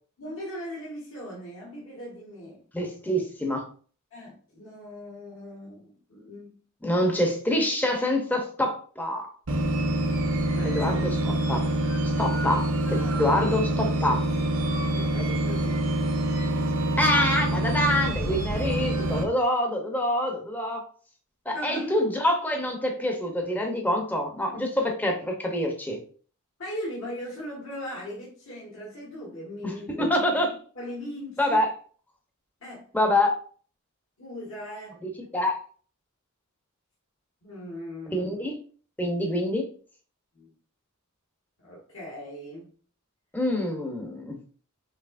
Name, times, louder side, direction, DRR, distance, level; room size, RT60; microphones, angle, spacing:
voice 1, 0.2-2.6 4.1-6.6 10.5-10.8 12.8-13.4 14.8-15.8 21.5-22.1 24.5-24.7 26.6-30.0 30.8-31.6 32.6-32.9 34.2-35.0 37.4-38.3 40.3-40.5 41.6-42.7, equal, 65° left, -5 dB, 1.7 m, -39 dB
voice 2, 2.7-3.7 6.8-9.3 10.6-11.7 12.2-14.3 17.0-20.8 21.5-26.0 29.6-30.6 31.4-31.7 32.9-33.4 35.0-35.6 38.1-38.5 39.0-39.7 43.3-44.4, left 1 dB, 10° left, 2 dB, 0.7 m, -26 dB
sound 1, 9.5-19.2, right 1 dB, 65° right, 0.9 m, -26 dB
5.6 x 3.0 x 2.5 m, 0.43 s
head